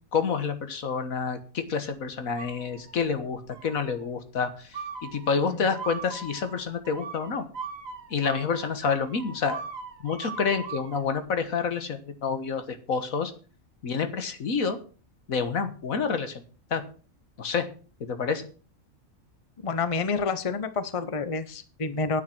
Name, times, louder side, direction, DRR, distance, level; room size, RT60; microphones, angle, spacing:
voice 1, 0.1-4.5 5.0-7.4 8.1-9.6 10.0-13.3 13.8-14.8 15.3-16.4 16.7-16.8 17.4-17.7 18.0-18.4, left 5 dB, 85° left, 9 dB, 1.8 m, -28 dB
sound 1, 2.4-3.1 3.5-4.0 4.7-11.0, right 5 dB, 70° right, 2.1 m, -40 dB
voice 2, 19.6-22.2, left 4 dB, 25° left, 12 dB, 0.9 m, -29 dB
9.6 x 9.4 x 6.1 m, 0.37 s
omnidirectional pair, 1.4 m